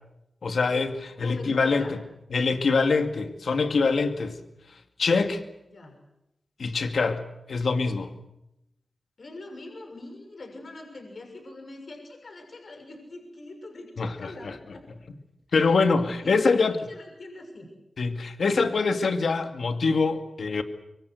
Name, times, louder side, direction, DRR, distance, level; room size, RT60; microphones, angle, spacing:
voice 1, 0.4-2.0 2.3-4.4 4.7-5.4 6.6-8.1 14.0-14.5 15.5-16.8 18.0-20.6, left 4 dB, 75° left, 7 dB, 2.2 m, -24 dB
voice 2, 1.1-1.9 5.7-5.9 9.2-14.9 15.5-17.7, left 2 dB, 55° left, 3 dB, 6.6 m, -43 dB
26.0 x 24.0 x 8.0 m, 0.86 s
wide cardioid pair, 85°, 0 cm